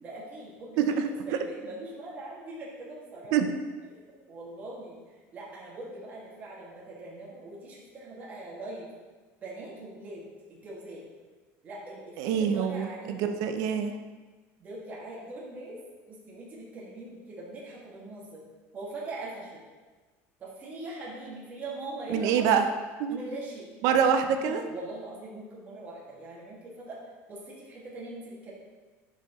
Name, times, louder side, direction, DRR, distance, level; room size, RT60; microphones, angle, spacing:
voice 1, 0.0-3.6 3.9-5.0 5.3-8.9 9.4-10.2 10.5-11.0 11.6-13.4 14.6-15.8 16.1-18.4 18.7-19.6 20.4-22.6 23.1-23.7 24.4-27.0 27.3-28.5, right 2 dB, 25° right, -6 dB, 2.1 m, -41 dB
voice 2, 0.8-1.1 3.3-3.5 12.2-13.9 22.1-22.7 23.0-23.2 23.8-24.6, right 7 dB, 65° right, 7 dB, 0.6 m, -25 dB
11.5 x 5.7 x 3.1 m, 1.3 s
cardioid pair, 160°, 6 cm